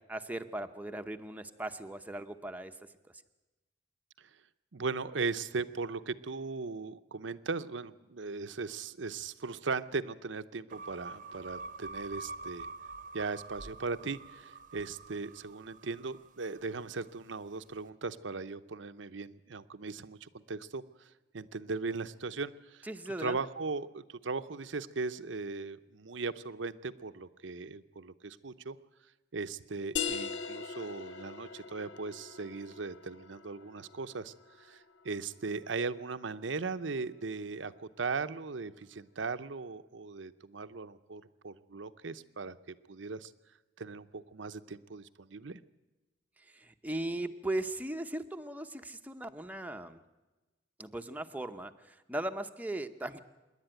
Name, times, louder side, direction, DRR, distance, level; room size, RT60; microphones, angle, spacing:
voice 1, 0.0-2.7 22.8-23.4 46.4-50.0 50.8-53.2, right 1 dB, 10° right, 7 dB, 0.8 m, -38 dB
voice 2, 4.7-12.7 13.1-20.8 21.3-22.9 23.2-28.8 29.3-43.3 43.8-45.6, right 4 dB, 75° right, 11 dB, 0.8 m, -38 dB
sound 1, 10.7-17.1, right 3 dB, 45° right, 0.9 m, -46 dB
sound 2, 30.0-35.3, left 6 dB, 65° left, 0.8 m, -41 dB
26.5 x 11.0 x 9.1 m, 1.1 s
head